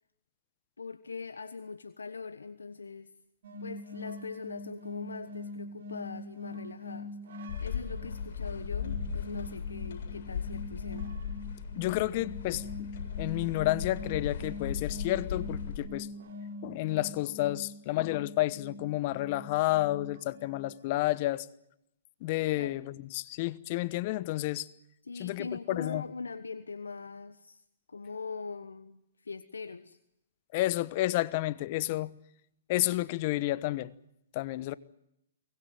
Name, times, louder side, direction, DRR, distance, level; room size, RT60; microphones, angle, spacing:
voice 1, 0.8-3.1 3.6-7.2 7.6-11.1 22.5-22.8 25.0-27.6 27.9-30.0, left 4 dB, 85° left, 1.2 m, -42 dB
sound 1, 3.4-21.1, left 2 dB, 60° right, 4.8 m, -44 dB
sound 2, 7.5-15.8, left 6 dB, 60° left, 7.4 m, -37 dB
voice 2, 11.8-12.9 13.2-16.1 16.6-21.5 22.2-22.8 23.1-24.7 25.2-26.0 30.5-32.1 32.7-33.9 34.3-34.7, left 17 dB, 45° left, 1.0 m, -30 dB
23.5 x 20.5 x 9.3 m
hypercardioid pair, 125°, 0 cm